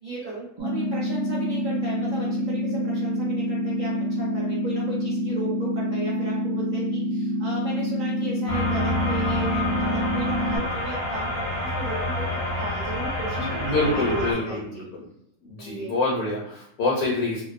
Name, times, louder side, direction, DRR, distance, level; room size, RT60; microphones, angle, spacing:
voice 1, 0.0-12.3 12.6-14.9 15.6-15.9, right 1 dB, 45° right, -8 dB, 0.7 m, -35 dB
sound 1, 0.6-10.6, equal, 65° right, 0.3 m, -27 dB
sound 2, 8.5-14.3, left 1 dB, 40° left, 0.5 m, -28 dB
voice 2, 13.4-15.0 15.4-17.4, left 2 dB, 70° left, -3 dB, 1.0 m, -26 dB
2.6 x 2.1 x 2.4 m, 0.71 s
omnidirectional pair, 1.6 m